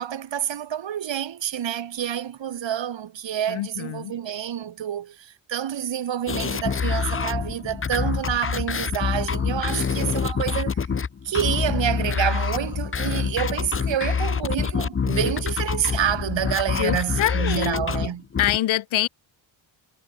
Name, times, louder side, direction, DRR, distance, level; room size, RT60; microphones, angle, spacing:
voice 1, 0.0-10.8 11.2-18.2, right 10 dB, 70° right, 6.2 m, -28 dB
voice 2, 3.5-4.1 16.8-18.1 18.4-19.1, left 13 dB, 85° left, 1.4 m, -25 dB
sound 1, 6.3-18.6, left 6 dB, 25° left, 0.9 m, -26 dB
cardioid pair, 125°, 46 cm